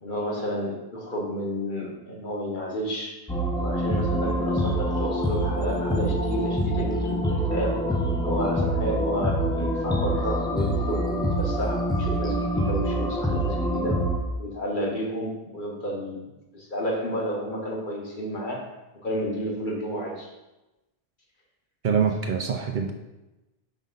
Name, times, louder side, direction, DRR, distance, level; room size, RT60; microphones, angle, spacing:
voice 1, 0.0-3.2 3.6-7.8 8.2-14.0 14.4-18.7 19.0-20.3, equal, 55° left, -1 dB, 1.4 m, -31 dB
sound 1, 3.3-14.2, equal, 5° left, 0.5 m, -25 dB
voice 2, 21.8-22.9, right 6 dB, 60° right, 4 dB, 0.6 m, -24 dB
5.3 x 5.2 x 3.8 m, 1.0 s
omnidirectional pair, 1.0 m